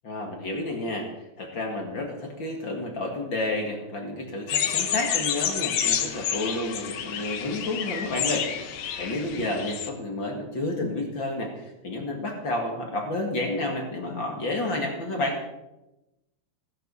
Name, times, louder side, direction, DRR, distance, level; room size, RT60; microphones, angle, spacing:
voice 1, 0.1-1.1 1.4-11.5 11.8-15.4, left 2 dB, 40° left, 1 dB, 2.3 m, -30 dB
sound 1, 4.5-9.9, left 9 dB, 65° left, 2.2 m, -29 dB
16.5 x 15.0 x 4.2 m, 0.95 s
omnidirectional pair, 4.1 m